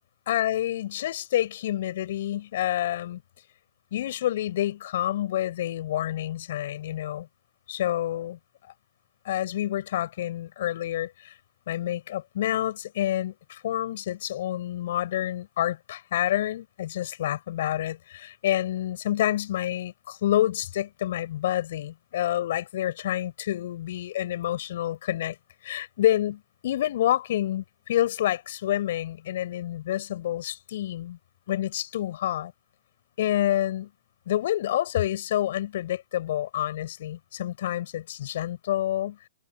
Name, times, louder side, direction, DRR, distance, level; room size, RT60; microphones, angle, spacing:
voice 1, 0.3-3.2 3.9-7.3 7.7-8.4 9.2-11.3 11.7-25.4 25.6-31.2 31.5-32.5 33.2-33.9 34.3-39.2, left 12 dB, 55° left, 7.3 m, -28 dB
hypercardioid pair, 125°, 0 cm